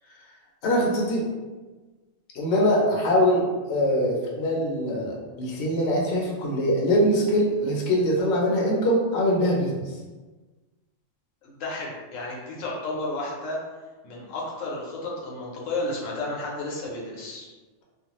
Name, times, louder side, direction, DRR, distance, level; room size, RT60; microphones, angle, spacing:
voice 1, 0.6-1.3 2.3-9.8, equal, 65° left, -2 dB, 0.8 m, -23 dB
voice 2, 11.4-13.6 14.0-17.5, left 2 dB, 85° left, -3 dB, 1.0 m, -32 dB
2.5 x 2.3 x 2.9 m, 1.3 s
omnidirectional pair, 1.3 m